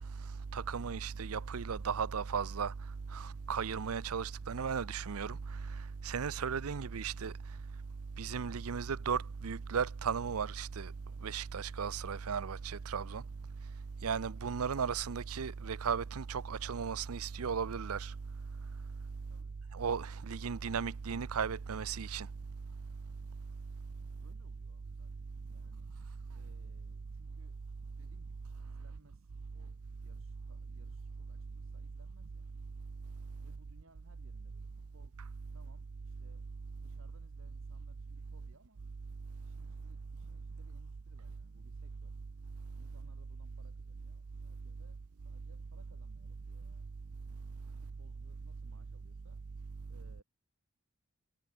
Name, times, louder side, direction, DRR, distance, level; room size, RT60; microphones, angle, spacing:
voice 1, 0.5-2.7 3.1-5.4 6.0-7.3 8.2-10.9 11.2-13.2 14.0-18.1 19.7-22.3, right 6 dB, 85° right, 0.6 m, -35 dB
voice 2, 19.3-19.6 24.0-25.1 25.5-25.9 26.3-27.7 28.0-32.6 33.4-38.8 39.4-42.2 42.7-46.9 47.7-49.5 49.9-50.2, right 1 dB, 65° right, 7.8 m, -66 dB
head